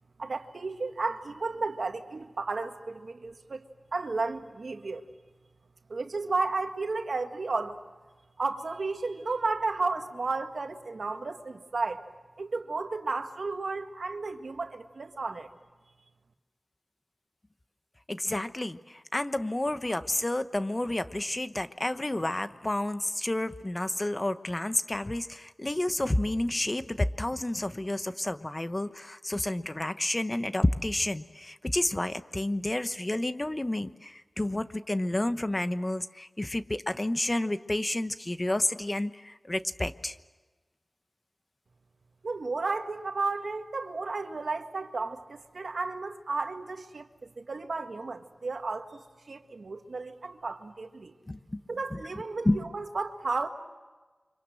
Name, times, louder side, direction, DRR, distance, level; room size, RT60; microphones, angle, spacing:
voice 1, 0.2-3.6 3.9-5.0 5.9-7.8 8.4-12.0 12.4-15.5 42.2-47.1 47.4-51.1 51.7-53.5, right 3 dB, 80° right, 6 dB, 1.8 m, -33 dB
voice 2, 18.1-40.2 51.3-51.6 51.9-52.0 52.4-52.6, left 1 dB, 30° left, 11 dB, 1.0 m, -30 dB
29.5 x 25.5 x 7.7 m, 1.3 s
wide cardioid pair, 60°, 0 cm